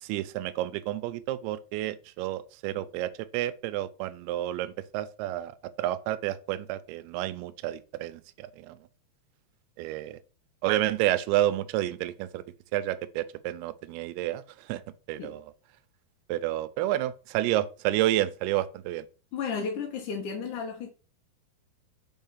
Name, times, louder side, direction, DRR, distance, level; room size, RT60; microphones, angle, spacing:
voice 1, 0.0-8.8 9.8-10.2 10.6-12.4 12.7-14.8 15.1-15.4 16.3-19.1, right 14 dB, 85° right, 2.6 m, -30 dB
voice 2, 19.3-20.9, left 5 dB, 65° left, 2.2 m, -33 dB
5.6 x 4.8 x 5.5 m
omnidirectional pair, 4.6 m